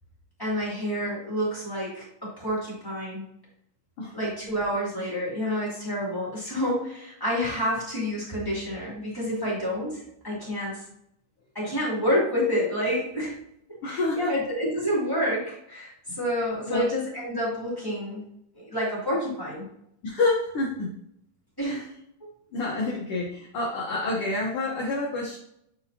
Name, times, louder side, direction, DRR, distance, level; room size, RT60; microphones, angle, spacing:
voice 1, 0.4-3.2 4.1-10.8 11.5-13.3 13.8-18.2 18.5-19.6 21.6-21.9, equal, 5° left, -7 dB, 2.2 m, -28 dB
voice 2, 13.8-14.3 16.7-16.9 20.0-20.9 21.7-21.8 22.5-25.4, left 2 dB, 65° left, -3 dB, 1.5 m, -28 dB
8.5 x 4.7 x 2.9 m, 0.73 s
omnidirectional pair, 3.9 m